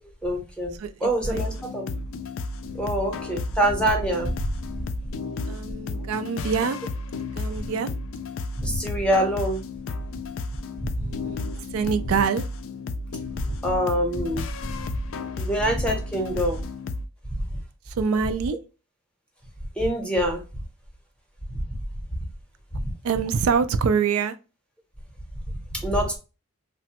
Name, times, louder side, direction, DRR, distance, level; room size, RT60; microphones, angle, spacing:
voice 1, 0.0-0.8 1.0-1.8 2.7-4.3 8.6-9.6 11.0-11.1 13.6-14.4 15.4-16.6 19.8-20.4 21.7-21.8 22.7-22.8 25.7-26.2, right 1 dB, 5° left, 0.7 m, -25 dB
voice 2, 0.8-1.7 5.5-6.8 7.2-7.9 11.0-12.5 17.9-18.6 23.0-24.4, right 6 dB, 75° right, 0.3 m, -26 dB
sound 1, 1.3-17.1, left 3 dB, 65° left, 0.3 m, -33 dB
3.2 x 2.0 x 2.8 m
head